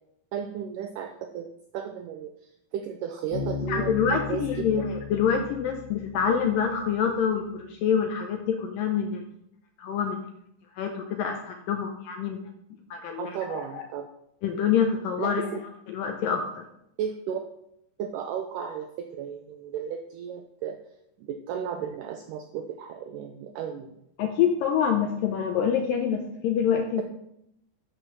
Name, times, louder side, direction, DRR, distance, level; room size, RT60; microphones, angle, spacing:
voice 1, 0.3-4.7 13.1-14.1 15.2-15.5 17.0-17.4 18.0-20.8 21.2-23.9, right 8 dB, 85° right, 6 dB, 1.9 m, -34 dB
Bass guitar, 3.3-6.9, left 5 dB, 35° left, 2.5 m, -36 dB
voice 2, 3.7-9.2 9.8-10.2 10.8-12.4 12.9-13.8 14.4-15.4 15.9-16.6 24.2-27.0, left 7 dB, 75° left, 4 dB, 2.2 m, -26 dB
11.5 x 5.2 x 5.9 m, 0.79 s
omnidirectional pair, 4.5 m